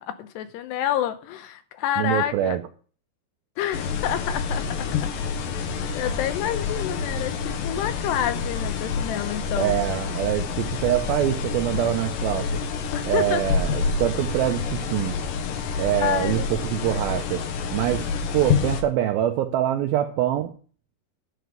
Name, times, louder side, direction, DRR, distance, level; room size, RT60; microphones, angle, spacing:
voice 1, 0.0-2.6 3.6-5.1 5.5-9.7 12.9-13.4 15.5-16.5, left 11 dB, 90° left, 3.1 m, -29 dB
voice 2, 2.0-2.6 9.6-12.6 13.1-15.2 15.8-17.4 17.7-18.1 18.3-20.5, right 12 dB, 80° right, 2.3 m, -24 dB
sound 1, 3.7-18.8, left 5 dB, 65° left, 2.5 m, -28 dB
11.5 x 4.6 x 7.9 m
omnidirectional pair, 4.7 m